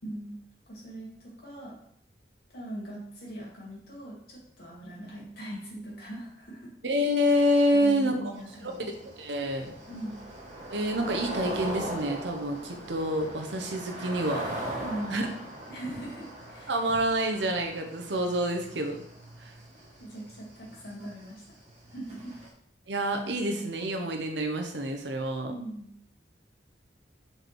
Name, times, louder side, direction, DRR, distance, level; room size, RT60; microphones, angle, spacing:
voice 1, 0.0-0.4 0.7-1.8 2.5-6.7 7.7-8.9 9.9-10.2 14.8-15.3 15.7-16.8 20.0-21.4 21.9-22.3 25.5-25.9, right 1 dB, 60° left, -5 dB, 2.8 m, -40 dB
voice 2, 6.8-8.2 8.9-9.7 10.7-14.5 15.1-15.3 16.7-19.0 19.4-19.5 22.9-25.5, equal, 70° right, 4 dB, 1.0 m, -27 dB
sound 1, 8.3-22.5, right 1 dB, 40° right, 1.8 m, -40 dB
4.9 x 4.8 x 4.6 m, 0.70 s
head